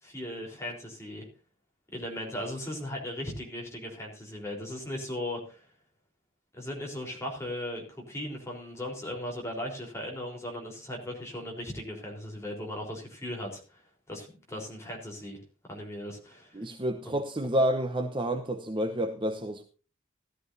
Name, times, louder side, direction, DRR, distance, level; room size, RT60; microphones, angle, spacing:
voice 1, 0.0-1.3 1.9-5.7 6.5-13.8 14.1-15.4 15.6-16.6 17.1-17.2, left 1 dB, 15° left, 3.9 m, -37 dB
voice 2, 16.5-19.6, right 1 dB, 25° right, 0.9 m, -29 dB
17.0 x 13.0 x 2.7 m
head